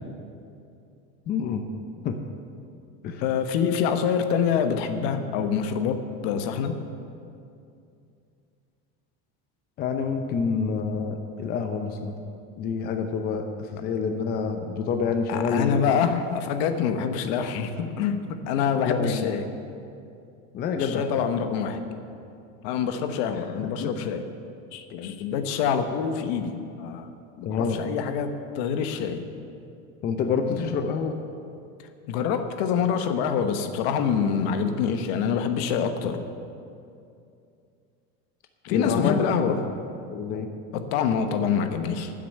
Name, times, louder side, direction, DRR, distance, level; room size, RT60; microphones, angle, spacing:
voice 1, 1.3-1.6 2.0-2.2 3.0-3.2 9.8-12.1 12.6-15.8 18.8-19.3 20.5-21.0 23.8-23.9 27.4-27.8 30.0-31.2 38.7-39.6 40.1-40.5, left 5 dB, 30° left, 6 dB, 0.7 m, -27 dB
voice 2, 3.2-6.8 13.8-13.9 15.3-19.5 20.8-21.8 22.6-24.3 24.7-27.1 27.4-29.2 30.5-30.7 31.8-36.2 38.6-39.6 40.7-42.1, left 7 dB, 70° left, 8 dB, 1.1 m, -26 dB
9.6 x 8.1 x 8.9 m, 2.5 s
cardioid pair, 160°, 31 cm